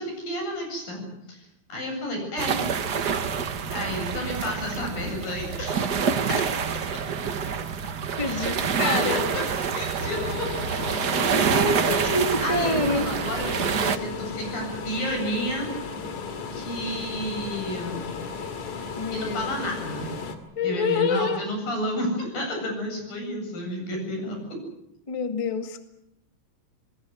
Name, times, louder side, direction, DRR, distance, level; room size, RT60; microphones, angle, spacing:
voice 1, 0.0-1.4 1.7-2.6 3.7-5.9 8.3-8.5 8.8-9.5 9.8-10.5 10.8-10.9 11.9-15.7 16.5-18.1 19.1-20.1 20.6-24.4, equal, 80° left, 3 dB, 9.9 m, -31 dB
sound 1, 2.4-14.0, right 6 dB, 75° right, 0.9 m, -27 dB
voice 2, 8.2-9.2 11.5-13.1 18.9-19.7 20.5-21.5 25.1-25.8, left 3 dB, 15° left, 6 dB, 1.0 m, -27 dB
sound 2, 10.0-20.4, left 5 dB, 55° left, 3.4 m, -35 dB
27.5 x 20.5 x 7.9 m, 0.82 s
omnidirectional pair, 4.0 m